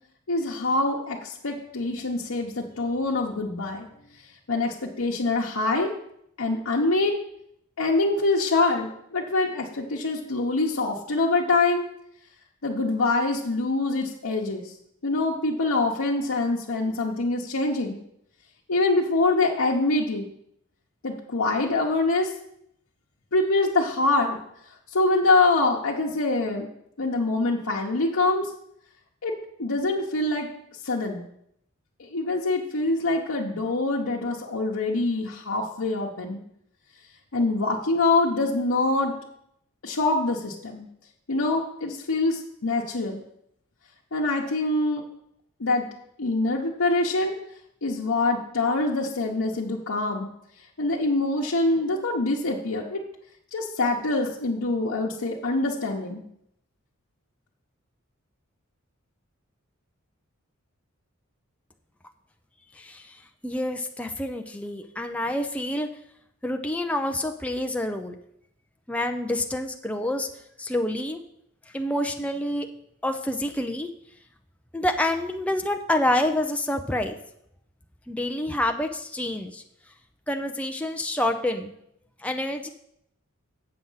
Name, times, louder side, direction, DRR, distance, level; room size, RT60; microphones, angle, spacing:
voice 1, 0.3-3.9 4.5-5.9 6.4-7.1 7.8-11.8 12.6-14.7 15.0-18.0 18.7-20.3 21.0-22.4 23.3-24.4 24.9-26.7 27.0-28.5 29.2-29.3 29.6-30.5 30.8-31.2 32.0-36.4 37.3-39.2 39.8-40.9 41.3-43.2 44.1-45.0 45.6-45.9 46.2-47.4 47.8-50.3 50.8-53.0 53.5-56.2, left 2 dB, 85° left, -4 dB, 1.0 m, -25 dB
voice 2, 62.8-63.2 63.4-65.9 66.4-68.2 68.9-70.3 70.6-71.2 71.7-72.7 73.0-73.9 74.7-77.2 78.1-79.6 80.3-81.7 82.2-82.7, left 1 dB, 5° left, 4 dB, 0.5 m, -27 dB
7.8 x 6.2 x 5.6 m, 0.74 s
head